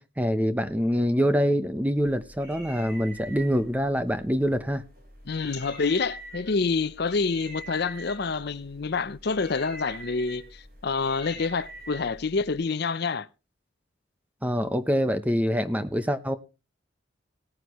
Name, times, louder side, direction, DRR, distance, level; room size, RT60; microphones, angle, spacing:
voice 1, 0.0-4.8 14.4-16.4, equal, 10° right, 0.7 m, -25 dB
sound 1, 2.0-12.6, right 1 dB, 50° right, 4.3 m, -45 dB
voice 2, 5.3-13.3, left 4 dB, 55° left, 0.6 m, -27 dB
18.0 x 9.6 x 3.1 m
head